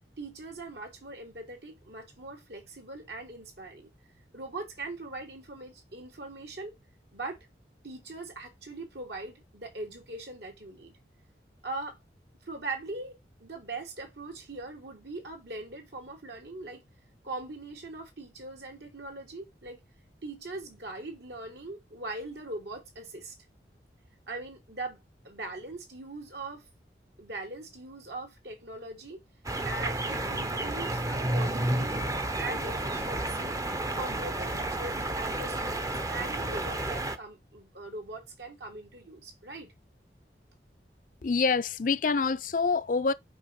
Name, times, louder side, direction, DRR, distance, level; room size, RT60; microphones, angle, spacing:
voice 1, 0.2-3.9 4.3-6.8 7.1-7.4 7.8-11.0 11.6-12.0 12.4-13.1 13.4-16.8 17.2-19.8 20.2-23.3 24.3-25.0 25.2-26.6 27.2-29.2 29.7-32.1 32.4-33.6 33.9-39.7, right 2 dB, 70° right, 2.7 m, -41 dB
sound 1, 29.5-37.2, right 1 dB, 20° right, 0.6 m, -31 dB
voice 2, 41.2-43.1, left 4 dB, 45° left, 0.5 m, -26 dB
6.0 x 4.8 x 5.7 m
head